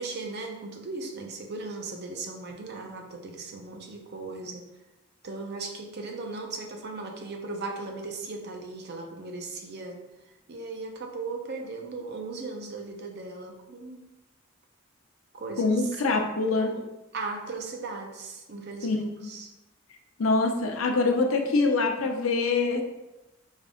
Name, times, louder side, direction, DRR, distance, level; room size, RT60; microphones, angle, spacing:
voice 1, 0.0-4.7 5.2-10.0 10.5-14.1 15.3-16.3 16.6-16.8 17.1-19.5, right 3 dB, 55° right, 3 dB, 0.7 m, -37 dB
voice 2, 15.6-16.7 18.8-19.3 20.2-22.8, left 3 dB, 80° left, 3 dB, 0.6 m, -25 dB
5.3 x 2.4 x 3.7 m, 0.99 s
head